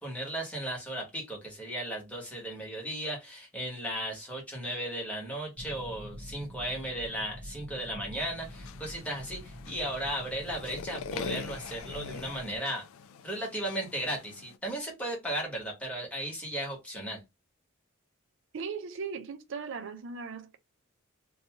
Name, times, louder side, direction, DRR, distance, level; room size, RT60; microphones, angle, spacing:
voice 1, 0.0-12.8 13.2-17.2, right 1 dB, 5° left, 1.0 m, -36 dB
sound 1, 5.6-12.6, equal, 85° right, 0.8 m, -46 dB
sound 2, 8.4-14.6, left 5 dB, 70° left, 0.3 m, -43 dB
voice 2, 18.5-20.6, right 5 dB, 60° right, 0.5 m, -38 dB
2.6 x 2.3 x 2.8 m
head